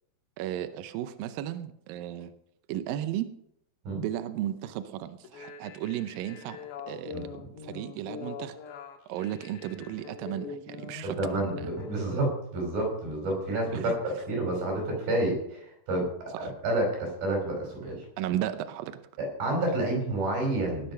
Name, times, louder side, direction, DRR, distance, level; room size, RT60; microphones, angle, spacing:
voice 1, 0.4-2.3 2.7-3.3 4.0-6.6 6.9-8.6 9.1-11.7 13.7-14.0 16.3-16.5 18.2-19.0, right 12 dB, 80° right, 10 dB, 2.1 m, -35 dB
sound 1, 5.2-11.9, left 6 dB, 80° left, 3.5 m, -43 dB
voice 2, 11.2-16.1 16.4-18.0 19.2-20.9, right 1 dB, 55° right, 1 dB, 6.8 m, -29 dB
19.0 x 8.1 x 5.6 m, 0.73 s
omnidirectional pair, 4.9 m